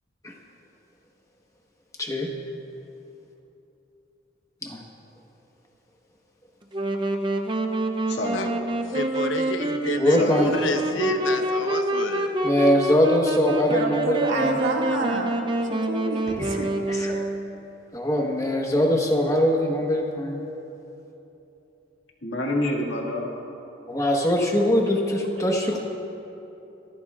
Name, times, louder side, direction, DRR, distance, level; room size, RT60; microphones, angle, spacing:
voice 1, 2.0-2.3 4.6-4.8 10.0-10.6 12.4-14.6 16.3-16.6 16.9-17.2 17.9-20.4 23.9-25.8, equal, 15° left, 0 dB, 1.3 m, -22 dB
Wind instrument woodwind instrument, 6.7-17.6, right 1 dB, 25° right, 0.6 m, -27 dB
voice 2, 8.1-8.6 10.2-11.2 22.2-23.4, left 1 dB, 65° left, -2 dB, 2.0 m, -29 dB
voice 3, 8.9-12.4, left 2 dB, 85° left, 5 dB, 1.0 m, -29 dB
voice 4, 13.7-15.4 15.7-16.7, right 2 dB, 90° right, -2 dB, 2.1 m, -28 dB
26.0 x 14.5 x 2.5 m, 3.0 s
head